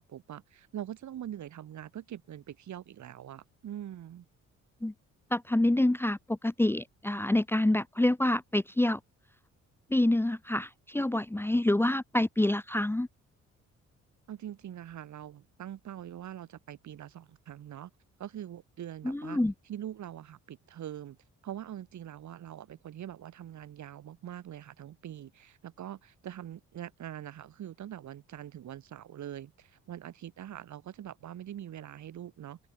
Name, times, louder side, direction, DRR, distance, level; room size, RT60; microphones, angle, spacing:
voice 1, 0.0-4.3 14.3-17.9 18.2-19.4 19.7-21.2 21.4-32.6, right 11 dB, 70° right, 6.8 m, -43 dB
voice 2, 5.3-9.0 9.9-13.1 19.0-19.5, left 1 dB, 5° left, 1.0 m, -27 dB
open air
cardioid pair, 90°, 30 cm